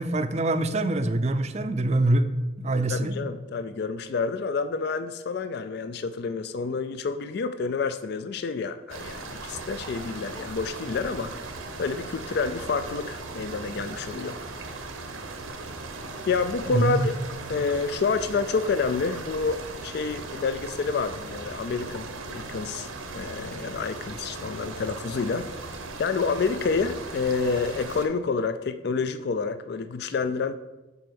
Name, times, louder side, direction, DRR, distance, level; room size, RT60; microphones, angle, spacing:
voice 1, 0.0-2.3 2.6-3.1 16.7-17.1, right 2 dB, 30° right, 10 dB, 0.5 m, -24 dB
voice 2, 2.9-11.3 11.8-14.4 16.3-17.2 17.5-25.5 26.0-30.5, left 4 dB, 50° left, 11 dB, 0.3 m, -28 dB
sound 1, 8.9-28.1, right 3 dB, 90° right, 1.0 m, -38 dB
7.7 x 4.4 x 6.8 m, 1.1 s
head